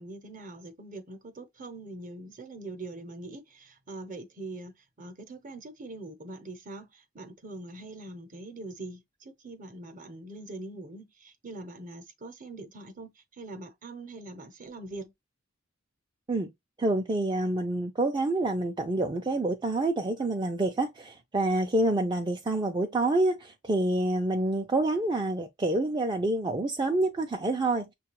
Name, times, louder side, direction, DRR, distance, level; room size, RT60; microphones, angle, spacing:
voice 1, 0.0-15.1, right 2 dB, 40° right, 0.8 m, -43 dB
voice 2, 16.8-27.9, right 2 dB, 20° right, 0.4 m, -27 dB
6.5 x 2.3 x 2.9 m
head